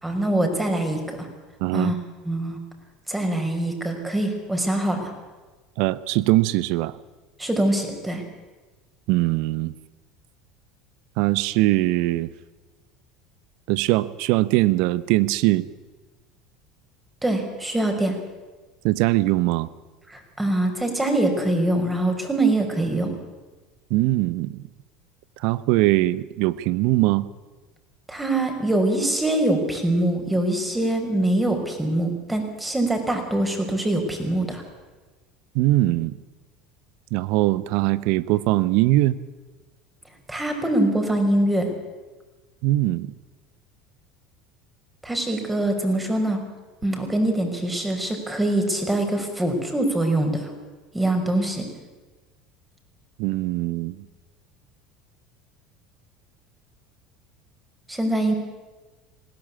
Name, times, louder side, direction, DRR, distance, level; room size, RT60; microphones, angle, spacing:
voice 1, 0.0-1.3 1.7-2.0 2.3-2.6 3.1-5.1 7.4-8.2 17.2-18.1 20.1-23.1 28.1-34.6 40.3-41.7 45.0-46.4 46.8-50.4 50.9-51.7 57.9-58.3, right 1 dB, 10° right, 4 dB, 5.4 m, -23 dB
voice 2, 1.6-2.0 5.8-6.9 9.1-9.7 11.2-12.3 13.7-15.7 18.8-19.7 23.9-24.6 25.4-27.3 35.5-36.2 37.1-39.2 42.6-43.1 53.2-54.0, right 18 dB, 65° right, 18 dB, 0.8 m, -21 dB
20.0 x 16.5 x 8.6 m, 1.3 s
hypercardioid pair, 75°, 0 cm